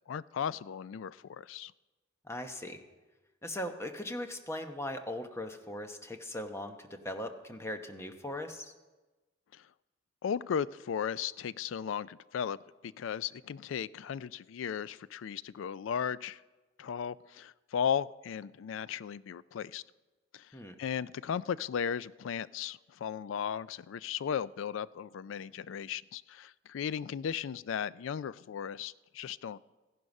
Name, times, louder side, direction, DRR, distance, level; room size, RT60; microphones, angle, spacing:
voice 1, 0.1-1.7 9.5-9.7 10.2-12.6 12.8-16.4 16.8-19.8 20.3-29.6, left 8 dB, 85° left, 19 dB, 0.3 m, -36 dB
voice 2, 2.2-2.8 3.4-8.7 20.5-20.7, left 1 dB, 15° left, 6 dB, 0.9 m, -39 dB
15.5 x 11.0 x 5.3 m, 1.2 s
head